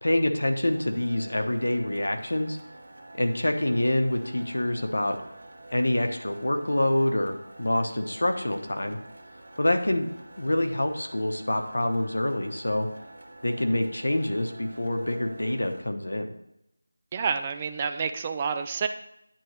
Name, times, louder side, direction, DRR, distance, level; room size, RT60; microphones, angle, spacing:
voice 1, 0.0-2.6 3.2-5.2 5.7-9.0 9.6-10.1 10.4-12.9 13.4-16.3, left 1 dB, 80° left, 6 dB, 1.0 m, -26 dB
sound 1, 0.7-15.8, right 2 dB, 70° right, 1.3 m, -48 dB
voice 2, 17.1-18.9, right 6 dB, 20° right, 8 dB, 0.3 m, -29 dB
8.9 x 3.0 x 6.4 m, 0.82 s
figure-of-eight pair, 170°, 0 cm